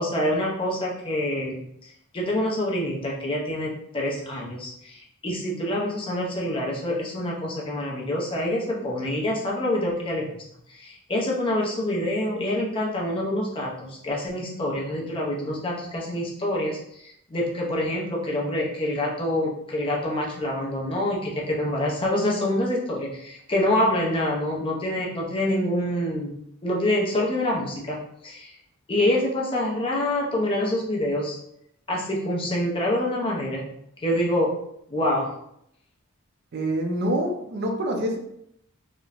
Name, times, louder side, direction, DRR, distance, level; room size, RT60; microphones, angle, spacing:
voice 1, 0.0-10.3 10.7-28.5 28.9-31.4 31.9-33.7 34.0-34.5 34.9-35.3, left 1 dB, 25° left, -3 dB, 0.5 m, -26 dB
voice 2, 36.5-38.2, right 1 dB, 50° right, 3 dB, 0.4 m, -26 dB
2.9 x 2.1 x 2.4 m, 0.75 s
head